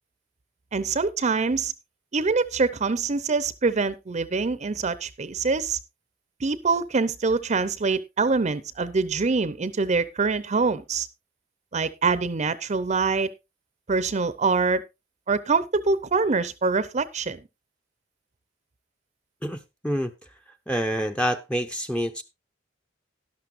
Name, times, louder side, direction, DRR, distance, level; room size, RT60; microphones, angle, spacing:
voice 1, 0.7-1.7 2.1-5.8 6.4-11.1 11.7-13.3 13.9-14.8 15.3-17.4, right 4 dB, 40° right, 0.6 m, -24 dB
voice 2, 19.4-20.1 20.7-22.2, equal, 5° left, 0.6 m, -27 dB
12.0 x 11.5 x 2.5 m
head